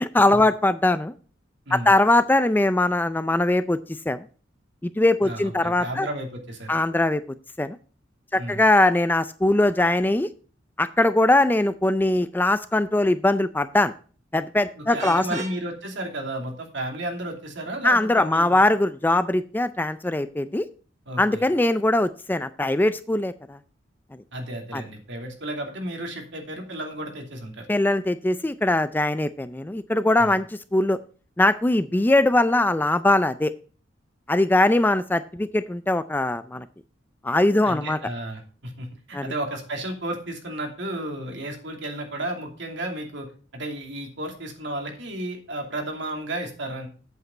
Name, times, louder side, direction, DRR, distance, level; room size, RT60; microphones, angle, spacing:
voice 1, 0.0-1.1 1.7-3.8 4.1-4.3 4.8-6.1 6.7-7.2 7.6-7.8 8.3-10.3 10.8-13.9 14.3-15.4 17.8-20.7 21.2-23.6 24.7-24.8 27.7-30.5 30.7-31.0 31.4-33.5 34.3-36.7 37.2-38.0 39.1-39.3, left 2 dB, 10° left, 12 dB, 0.4 m, -21 dB
voice 2, 5.2-6.7 8.4-8.6 14.8-18.6 21.1-21.5 24.3-27.7 30.2-30.4 37.6-46.9, right 1 dB, 65° right, 2 dB, 2.7 m, -33 dB
Vehicle horn car horn honking, 15.0-15.6, right 4 dB, 40° right, 1.6 m, -36 dB
8.2 x 8.2 x 4.3 m, 0.39 s
head